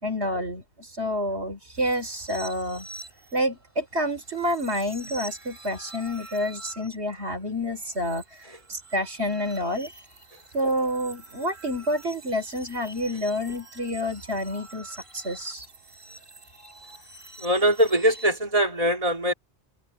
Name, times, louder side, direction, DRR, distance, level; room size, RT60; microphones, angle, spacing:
voice 1, 0.0-2.9 3.3-8.2 8.7-9.9 10.5-15.7, equal, 80° right, 3.9 m, -28 dB
sound 1, 1.7-18.3, right 2 dB, 55° right, 5.5 m, -46 dB
voice 2, 17.4-19.3, equal, 35° right, 3.2 m, -22 dB
omnidirectional pair, 1.1 m